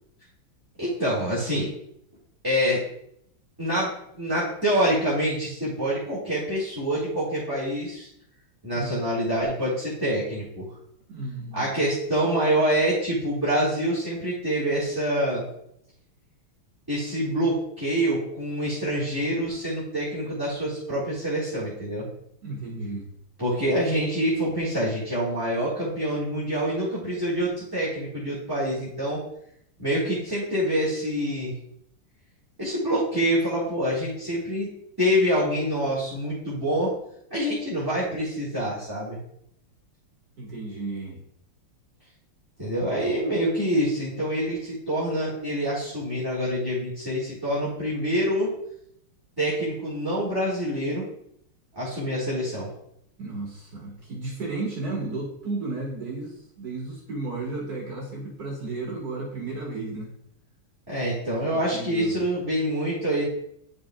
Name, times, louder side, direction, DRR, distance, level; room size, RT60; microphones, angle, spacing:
voice 1, 0.8-1.7 2.4-2.8 3.6-8.1 8.6-10.7 11.5-15.5 16.9-22.0 23.4-29.2 29.8-31.5 32.6-34.7 35.0-36.9 37.3-39.2 42.6-48.5 49.4-51.0 51.7-52.7 60.9-63.3, equal, 10° right, -9 dB, 1.6 m, -26 dB
voice 2, 11.1-11.7 22.4-23.1 40.4-41.2 53.2-60.1 61.5-62.2, right 3 dB, 45° right, -4 dB, 2.0 m, -33 dB
9.8 x 5.2 x 2.3 m, 0.73 s
omnidirectional pair, 2.4 m